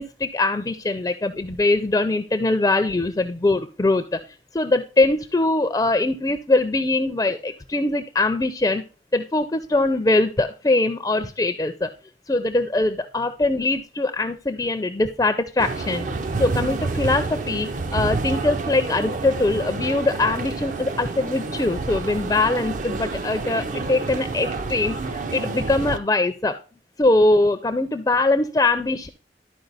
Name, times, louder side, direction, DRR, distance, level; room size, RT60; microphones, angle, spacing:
voice 1, 0.0-4.2 4.5-8.8 9.1-11.9 12.3-16.1 16.4-26.6 27.0-29.1, left 2 dB, 20° left, 8 dB, 0.4 m, -22 dB
sound 1, 15.6-26.0, right 3 dB, 45° right, 0.5 m, -29 dB
12.0 x 4.7 x 4.0 m, 0.35 s
head